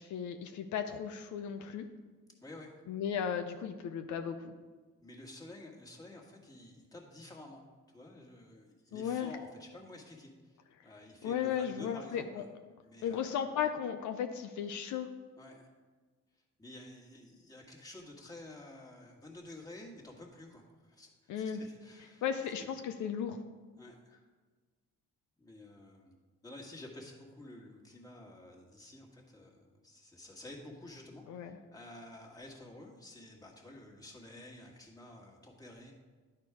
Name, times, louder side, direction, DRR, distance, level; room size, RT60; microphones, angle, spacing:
voice 1, 0.0-1.8 2.9-4.5 8.9-9.3 11.2-12.4 13.0-15.1 21.3-21.6 22.2-23.4 31.3-31.6, left 8 dB, 75° left, 6 dB, 0.6 m, -35 dB
voice 2, 2.4-2.7 5.0-12.5 12.8-13.5 15.4-15.7 16.6-22.2 22.6-22.7 23.7-24.3 25.4-26.1 26.4-35.9, left 1 dB, 10° left, -2 dB, 1.7 m, -51 dB
10.5 x 4.5 x 4.7 m, 1.4 s
cardioid pair, 90°, 30 cm